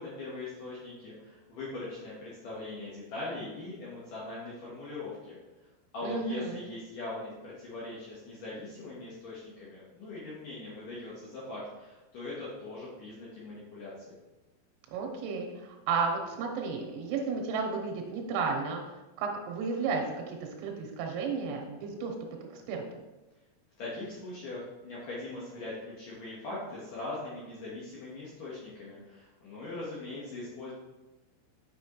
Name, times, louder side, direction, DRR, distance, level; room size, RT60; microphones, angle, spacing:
voice 1, 0.0-5.4 5.9-13.9 23.8-30.7, left 2 dB, 75° left, -7 dB, 1.9 m, -41 dB
voice 2, 6.0-6.6 14.9-18.8 19.2-22.1 22.5-23.0, right 4 dB, 90° right, 1 dB, 3.5 m, -33 dB
7.9 x 6.2 x 3.1 m, 1.1 s
omnidirectional pair, 5.9 m